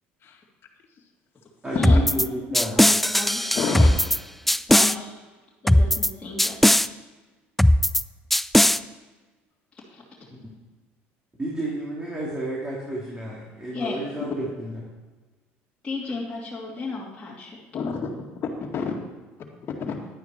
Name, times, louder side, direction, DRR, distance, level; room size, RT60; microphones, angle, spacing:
voice 1, 1.6-2.8 11.4-14.7, right 1 dB, 15° right, -5 dB, 3.1 m, -31 dB
sound 1, 1.8-2.3 2.5-4.2 4.5-4.9 5.7-6.1 6.4-6.9 7.6-8.0 8.3-8.8, left 1 dB, 5° left, 0.4 m, -18 dB
voice 2, 2.8-3.5 4.7-5.2 5.6-6.6 9.9-10.3 13.7-14.0 15.8-17.6, left 3 dB, 20° left, -6 dB, 2.6 m, -33 dB
voice 3, 3.6-4.0 4.5-4.6 17.7-18.1 18.4-18.9 19.7-20.0, left 5 dB, 45° left, -1 dB, 2.1 m, -29 dB
11.0 x 9.5 x 4.5 m, 1.3 s
supercardioid pair, 90°, 5 cm